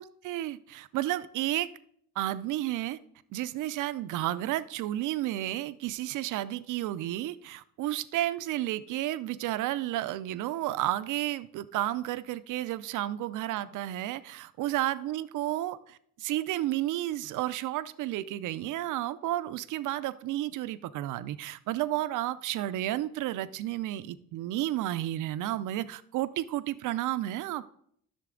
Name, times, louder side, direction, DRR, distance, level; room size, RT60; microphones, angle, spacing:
voice 1, 0.0-1.7 2.2-3.0 3.3-27.6, right 14 dB, 85° right, 14 dB, 0.5 m, -32 dB
11.0 x 6.7 x 3.8 m, 0.66 s
cardioid pair, 90°, 30 cm